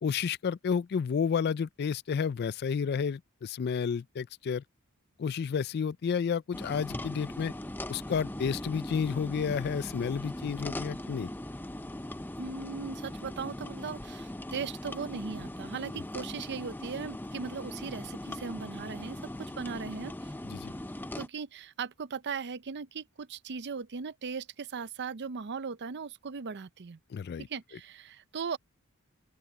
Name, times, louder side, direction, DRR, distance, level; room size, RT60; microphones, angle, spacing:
voice 1, 0.0-4.6 5.2-7.5 7.9-11.3 15.9-16.0 20.5-20.7 27.1-27.5, left 6 dB, 50° left, 0.3 m, -31 dB
sound 1, 6.5-21.3, left 1 dB, 10° left, 0.7 m, -40 dB
voice 2, 12.4-20.3 21.2-27.0 27.4-28.6, right 5 dB, 50° right, 0.6 m, -38 dB
open air
head